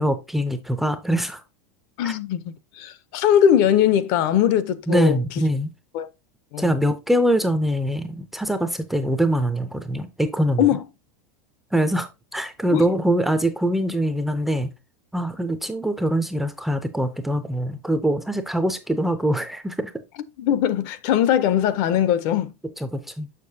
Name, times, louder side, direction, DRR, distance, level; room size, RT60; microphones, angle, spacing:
voice 1, 0.0-1.4 2.0-2.1 4.9-5.7 6.6-10.6 11.7-14.7 15.1-19.9 22.9-23.3, right 1 dB, ahead, 0.4 m, -23 dB
voice 2, 2.0-5.2 5.9-6.1 6.5-6.7 10.6-10.8 12.7-12.9 20.4-22.5, left 10 dB, 40° left, 0.6 m, -20 dB
6.6 x 6.6 x 2.7 m
supercardioid pair, 170°, 8 cm